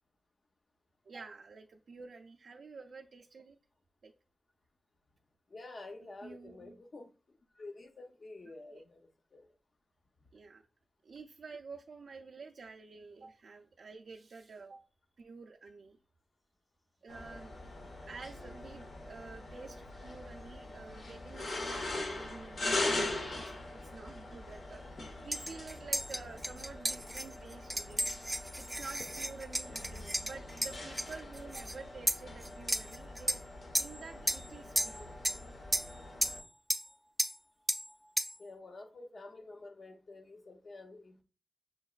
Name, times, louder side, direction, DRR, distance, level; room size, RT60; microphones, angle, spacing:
voice 1, 1.1-3.6 4.0-4.1 6.2-6.8 8.7-8.8 10.3-10.6 11.0-14.8 15.2-16.0 17.0-28.1 28.6-33.4 33.8-35.1, right 4 dB, 90° right, 0.4 m, -50 dB
voice 2, 5.5-7.1 7.6-9.5 10.2-10.3 38.4-41.2, left 2 dB, 55° left, 0.7 m, -49 dB
sound 1, 17.1-36.4, left 2 dB, 80° left, 1.1 m, -41 dB
sound 2, 17.8-17.9 20.4-20.8 22.5-23.5 24.4-24.9, left 1 dB, 30° left, 1.6 m, -54 dB
sound 3, 25.3-31.7 32.1-33.4 33.7-34.0 34.3-34.5 34.8-35.4 35.7-35.9 36.2-36.4 36.7-36.9 37.2-37.4 37.7-37.9 38.2-38.4, right 1 dB, 10° right, 0.4 m, -34 dB
6.3 x 2.9 x 2.4 m
wide cardioid pair, 125°, 0 cm